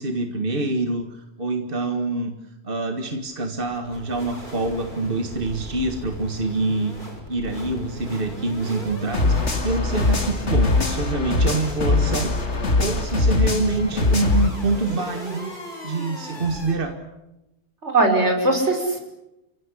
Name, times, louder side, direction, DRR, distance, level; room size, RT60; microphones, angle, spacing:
voice 1, 0.0-2.3 2.6-7.0 7.3-12.3 12.8-15.5 15.8-16.9, right 2 dB, 55° right, 6 dB, 2.1 m, -26 dB
sound 1, 3.1-16.7, equal, 45° left, 7.2 m, -38 dB
sound 2, 9.1-14.5, left 3 dB, 85° left, 2.8 m, -21 dB
voice 2, 13.3-13.7 17.8-19.0, right 2 dB, 85° right, 4 dB, 5.6 m, -21 dB
30.0 x 17.0 x 10.0 m, 0.93 s
omnidirectional pair, 1.1 m